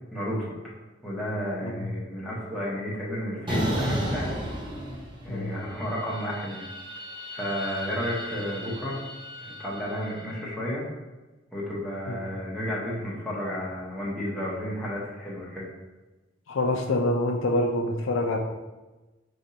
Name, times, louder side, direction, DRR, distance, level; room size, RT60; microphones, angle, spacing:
voice 1, 0.1-0.6 1.0-4.3 5.2-6.7 7.3-9.0 9.4-10.9 11.5-15.7, equal, ahead, -7 dB, 1.1 m, -32 dB
sound 1, 3.5-5.4 5.8-10.1, equal, 25° right, 0.7 m, -33 dB
voice 2, 16.5-18.4, left 1 dB, 90° left, 3 dB, 0.5 m, -26 dB
5.2 x 3.4 x 2.8 m, 1.1 s
head